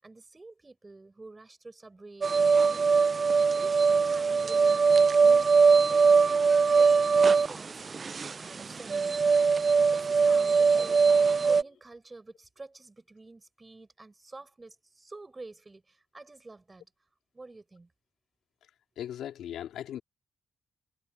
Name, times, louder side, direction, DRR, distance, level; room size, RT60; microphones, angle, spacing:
voice 1, 0.0-3.1 3.6-4.8 5.2-6.3 6.7-8.0 8.4-9.2 9.7-16.9 17.3-17.9, right 3 dB, 20° right, 7.1 m, -48 dB
sound 1, 2.2-11.6, right 5 dB, 40° right, 0.3 m, -22 dB
voice 2, 19.0-20.0, left 10 dB, 90° left, 2.5 m, -38 dB
cardioid pair, 100°, 0 cm